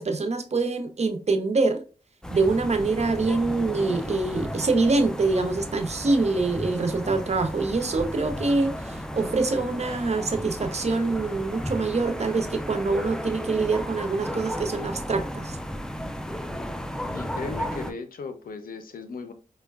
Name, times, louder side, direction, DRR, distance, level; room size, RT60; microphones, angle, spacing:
voice 1, 0.0-1.8 2.3-15.6, right 3 dB, 50° right, 0.6 m, -25 dB
sound 1, 2.2-17.9, equal, 5° left, 0.3 m, -34 dB
voice 2, 17.1-19.3, left 4 dB, 90° left, 0.5 m, -36 dB
4.5 x 2.1 x 2.2 m
cardioid pair, 55°, 14 cm